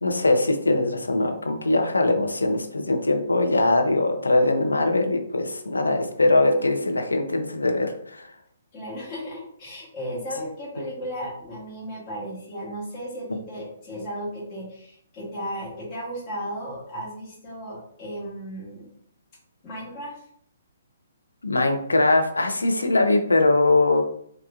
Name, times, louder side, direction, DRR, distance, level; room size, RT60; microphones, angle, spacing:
voice 1, 0.0-8.3 21.4-24.1, left 2 dB, 85° left, 5 dB, 0.6 m, -21 dB
voice 2, 8.7-18.9 19.6-20.2, equal, 30° left, -7 dB, 1.4 m, -35 dB
4.7 x 2.4 x 2.4 m, 0.64 s
figure-of-eight pair, 130°, 0 cm